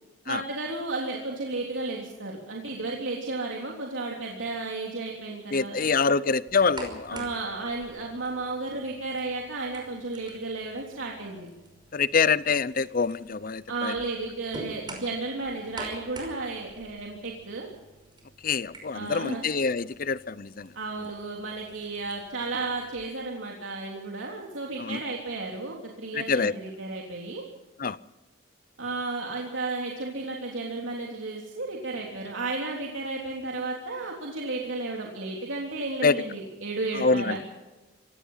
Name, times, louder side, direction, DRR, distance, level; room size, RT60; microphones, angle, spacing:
voice 1, 0.2-6.2 7.1-11.5 13.7-17.7 18.9-19.4 20.7-27.4 28.8-37.4, right 3 dB, 90° right, 3.4 m, -33 dB
voice 2, 5.5-7.2 11.9-13.9 18.4-20.7 24.8-25.0 26.1-26.5 27.8-28.0 36.0-36.2 37.0-37.4, left 5 dB, 45° left, 0.7 m, -25 dB
sound 1, 6.5-23.0, right 2 dB, 25° right, 5.5 m, -47 dB
26.5 x 17.0 x 5.7 m
head